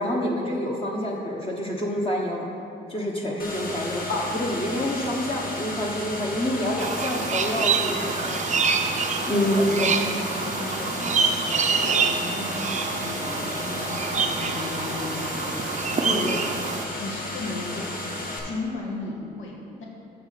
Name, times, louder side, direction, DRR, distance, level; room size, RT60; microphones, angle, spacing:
voice 1, 0.0-2.4 2.9-8.4 8.9-10.0 16.0-16.3, left 1 dB, 25° left, -2 dB, 1.1 m, -27 dB
sound 1, 3.4-18.4, left 1 dB, 45° left, 1.9 m, -33 dB
sound 2, 6.8-16.9, right 5 dB, 35° right, 0.6 m, -26 dB
voice 2, 8.0-8.5 9.3-15.6 16.1-16.4 17.0-17.9 18.2-19.9, left 3 dB, 80° left, -2 dB, 1.6 m, -35 dB
6.3 x 5.9 x 6.6 m, 2.7 s
cardioid pair, 90°, 20 cm